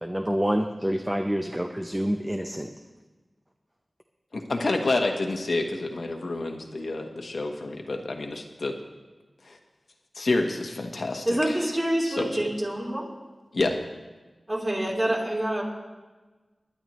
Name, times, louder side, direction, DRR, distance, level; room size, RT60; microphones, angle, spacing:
voice 1, 0.0-2.7, equal, 10° right, 4 dB, 0.7 m, -27 dB
voice 2, 4.3-8.7 9.4-9.6 10.1-11.6 12.0-12.4 13.5-13.8, left 2 dB, 75° left, 3 dB, 1.2 m, -28 dB
voice 3, 11.2-13.0 14.5-15.6, right 1 dB, 25° right, -4 dB, 3.5 m, -26 dB
19.5 x 11.0 x 3.1 m, 1.2 s
wide cardioid pair, 65°, 0 cm